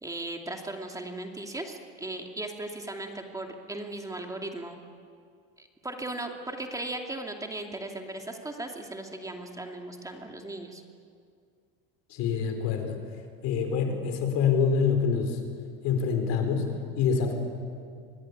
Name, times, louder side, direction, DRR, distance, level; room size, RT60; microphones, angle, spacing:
voice 1, 0.0-4.8 5.6-10.8, right 2 dB, 10° right, 3 dB, 2.6 m, -37 dB
voice 2, 12.1-13.0 13.4-15.4 15.8-17.3, left 6 dB, 65° left, 5 dB, 4.8 m, -26 dB
25.0 x 19.5 x 9.9 m, 2.2 s
cardioid pair, 120°, 29 cm